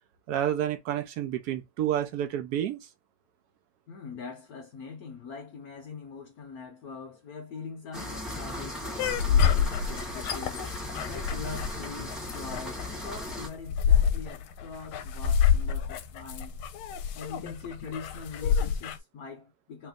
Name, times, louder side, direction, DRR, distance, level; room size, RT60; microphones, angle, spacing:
voice 1, 0.3-2.9, right 10 dB, 70° right, 0.9 m, -29 dB
voice 2, 3.9-10.8 11.0-16.6 17.1-19.9, left 5 dB, 70° left, 0.8 m, -42 dB
sound 1, 7.9-13.5, left 1 dB, ahead, 1.2 m, -37 dB
sound 2, 9.0-19.0, left 7 dB, 90° left, 1.5 m, -27 dB
3.2 x 3.1 x 3.6 m
omnidirectional pair, 2.3 m